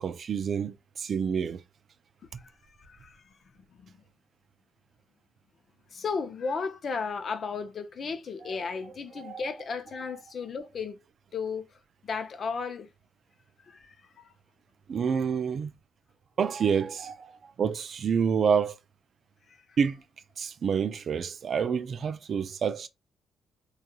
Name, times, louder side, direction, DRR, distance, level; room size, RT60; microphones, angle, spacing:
voice 1, 0.0-1.6 8.4-8.6 9.2-9.4 14.9-15.7 16.4-17.3 17.6-18.8 19.8-20.0 20.4-22.9, right 6 dB, 55° right, 0.3 m, -28 dB
voice 2, 2.8-3.2 3.8-3.9 5.9-11.0 11.3-11.6 12.0-12.9 13.7-13.9 19.5-19.6, left 5 dB, 50° left, 0.5 m, -34 dB
2.8 x 2.3 x 2.3 m
cardioid pair, 90°, 0 cm